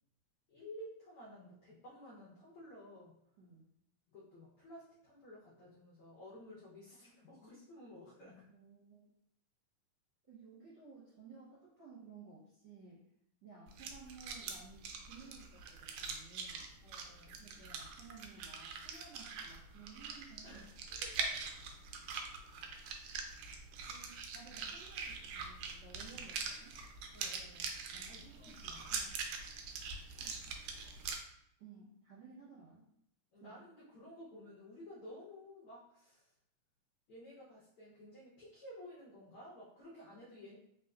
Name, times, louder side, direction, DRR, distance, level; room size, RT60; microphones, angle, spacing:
voice 1, 0.5-3.1 4.1-8.4 16.8-17.4 20.4-21.3 27.1-27.7 28.1-28.9 33.3-36.3 37.1-40.6, left 1 dB, 80° left, -6 dB, 1.2 m, -53 dB
voice 2, 8.2-9.0 10.3-13.0 13.4-16.6 17.4-20.7 23.9-26.7 27.9-29.2 30.2-30.4 31.6-32.9 33.4-33.5, right 5 dB, 60° right, -9 dB, 1.3 m, -56 dB
sound 1, 13.7-31.2, right 5 dB, 85° right, 1.5 m, -43 dB
4.2 x 3.5 x 2.4 m, 0.73 s
omnidirectional pair, 3.6 m